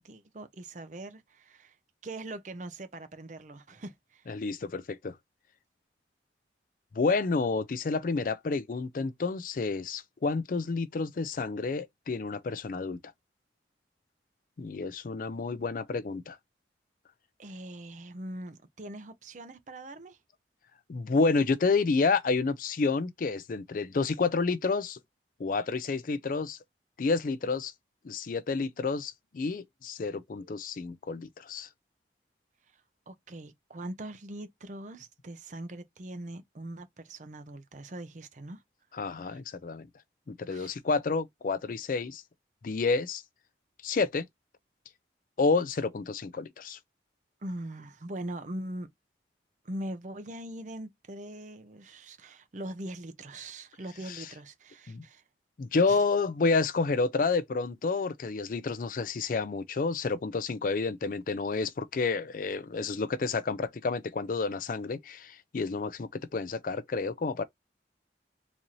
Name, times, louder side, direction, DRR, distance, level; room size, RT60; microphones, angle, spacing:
voice 1, 0.0-1.8 2.0-4.3 17.4-20.2 32.7-32.8 33.1-38.6 39.1-39.4 40.5-40.8 47.4-48.9 49.6-55.2 55.9-56.0, right 1 dB, 40° right, 0.6 m, -41 dB
voice 2, 4.3-5.1 6.9-13.0 14.6-16.4 20.9-25.0 25.4-26.6 27.0-27.7 28.0-31.7 38.9-39.9 40.3-42.2 42.6-43.2 43.8-44.3 45.4-46.8 54.1-54.3 54.9-55.0 55.6-67.4, left 4 dB, 50° left, 0.4 m, -29 dB
4.0 x 2.7 x 3.0 m
head